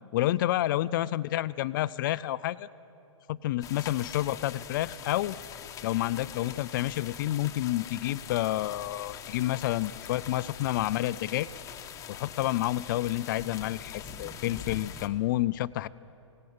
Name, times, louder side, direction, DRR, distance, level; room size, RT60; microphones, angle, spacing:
voice 1, 0.1-2.7 3.3-5.4 5.8-11.5 12.1-15.9, left 15 dB, 40° left, 17 dB, 0.4 m, -29 dB
sound 1, 3.6-15.1, left 8 dB, 20° left, 1.1 m, -43 dB
18.0 x 17.5 x 8.7 m, 2.8 s
hypercardioid pair, 135°, 16 cm